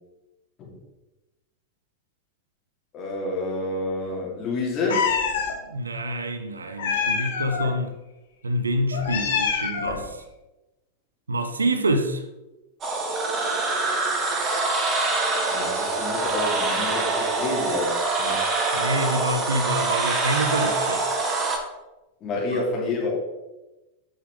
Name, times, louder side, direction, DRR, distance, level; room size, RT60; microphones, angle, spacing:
voice 1, 2.9-5.1 15.4-18.5 22.2-23.3, left 2 dB, 30° left, 2.5 m, -29 dB
Meow, 4.9-5.5 6.8-7.7 8.9-10.0, left 6 dB, 60° left, 1.4 m, -25 dB
voice 2, 5.7-7.9 8.4-10.2 11.3-12.2 18.7-21.1 22.5-22.6, right 1 dB, 75° right, 0.7 m, -26 dB
sound 1, 12.8-21.6, right 3 dB, 25° right, 1.3 m, -25 dB
8.7 x 5.5 x 3.6 m
figure-of-eight pair, 90°, 0 cm